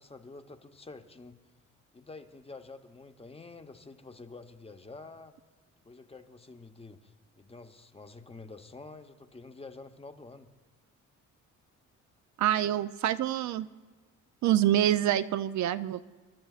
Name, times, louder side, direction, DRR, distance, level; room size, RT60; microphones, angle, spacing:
voice 1, 0.0-1.4 1.9-5.4 5.8-10.5, left 3 dB, 20° left, 7 dB, 0.8 m, -48 dB
voice 2, 12.4-13.7 14.4-16.0, right 12 dB, 70° right, 12 dB, 0.5 m, -26 dB
29.0 x 12.0 x 2.4 m, 1.4 s
cardioid pair, 90°, 30 cm